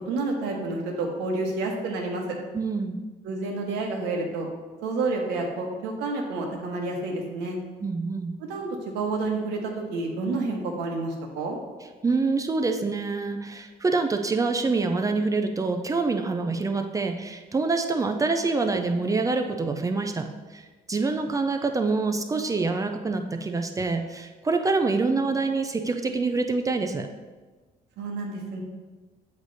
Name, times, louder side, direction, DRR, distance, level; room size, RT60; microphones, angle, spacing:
voice 1, 0.1-2.4 3.2-4.5 4.8-7.6 8.5-11.6 28.0-28.6, right 3 dB, 85° right, 1 dB, 1.2 m, -29 dB
voice 2, 2.5-3.0 7.8-8.3 12.0-27.1, right 3 dB, 20° right, 5 dB, 0.4 m, -26 dB
8.0 x 3.3 x 4.0 m, 1.3 s
cardioid pair, 110°, 17 cm